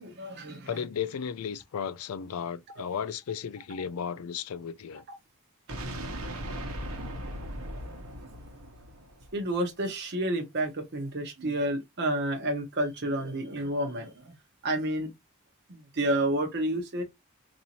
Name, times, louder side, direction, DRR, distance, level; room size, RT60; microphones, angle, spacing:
voice 1, 0.0-0.9 2.8-2.9 5.1-5.2 6.7-6.8 9.3-14.4 14.6-15.1 15.7-17.0, right 1 dB, 50° right, 0.8 m, -30 dB
voice 2, 0.7-5.0, left 7 dB, 90° left, 0.4 m, -34 dB
sound 1, 5.7-9.6, equal, 80° right, 1.0 m, -38 dB
4.1 x 2.6 x 2.8 m
head